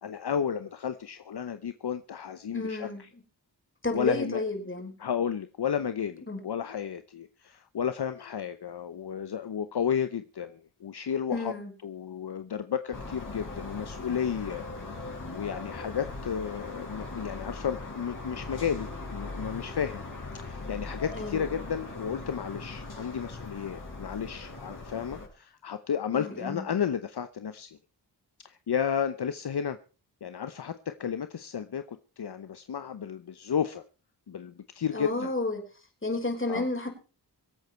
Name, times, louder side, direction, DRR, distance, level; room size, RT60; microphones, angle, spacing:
voice 1, 0.0-2.9 3.9-4.4 5.0-11.5 11.8-14.6 14.9-20.0 20.3-27.8 28.4-29.8 30.2-33.8 34.3-35.3 36.5-36.7, left 8 dB, 65° left, 11 dB, 0.9 m, -32 dB
voice 2, 2.5-3.0 3.8-4.9 6.3-6.4 11.3-11.7 21.1-21.4 26.1-26.6 34.9-35.6 36.0-36.9, left 2 dB, 30° left, 3 dB, 5.4 m, -31 dB
sound 1, 12.9-25.3, left 3 dB, 50° left, 5.7 m, -40 dB
24.5 x 8.3 x 4.5 m, 0.35 s
wide cardioid pair, 70°, 42 cm